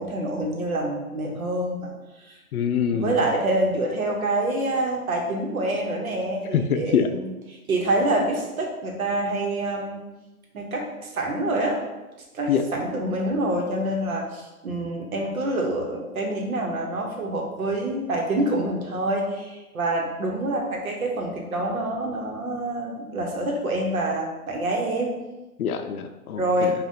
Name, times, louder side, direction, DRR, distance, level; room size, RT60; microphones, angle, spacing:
voice 1, 0.0-1.9 2.3-2.4 2.9-10.0 10.5-11.8 12.3-25.2 26.4-26.7, right 1 dB, 70° right, 0 dB, 1.1 m, -26 dB
voice 2, 2.5-3.2 6.5-7.1 12.5-12.6 25.6-26.7, left 8 dB, 75° left, 8 dB, 0.5 m, -24 dB
4.9 x 2.5 x 2.8 m, 1.1 s
hypercardioid pair, 170°, 44 cm